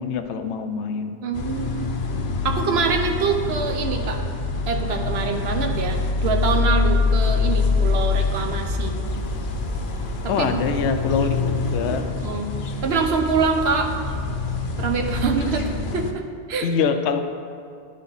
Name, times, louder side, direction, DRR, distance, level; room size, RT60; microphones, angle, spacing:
voice 1, 0.0-1.1 10.3-12.0 16.6-17.2, left 6 dB, 90° left, 7 dB, 0.9 m, -24 dB
voice 2, 1.2-1.9 2.4-4.2 4.7-8.9 10.2-10.6 12.2-12.5 12.8-13.9 14.8-16.7, right 5 dB, 70° right, 4 dB, 0.9 m, -25 dB
sound 1, 1.3-16.1, left 4 dB, 55° left, 0.7 m, -25 dB
sound 2, 9.0-14.2, right 1 dB, 30° right, 0.4 m, -36 dB
10.5 x 4.2 x 4.0 m, 2.3 s
omnidirectional pair, 1.1 m